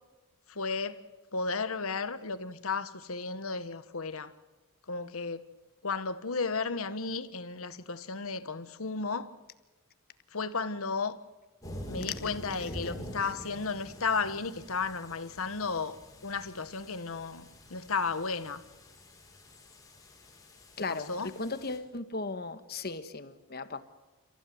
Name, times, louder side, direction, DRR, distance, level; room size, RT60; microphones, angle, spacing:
voice 1, 0.5-1.0 1.3-4.3 4.9-5.4 5.8-9.3 10.3-11.2 11.9-18.6 20.9-21.3, left 4 dB, 75° left, 1.4 m, -34 dB
sound 1, 11.6-21.8, equal, 15° left, 5.9 m, -46 dB
voice 2, 20.8-23.8, left 3 dB, 45° left, 1.5 m, -37 dB
29.5 x 15.0 x 9.4 m
head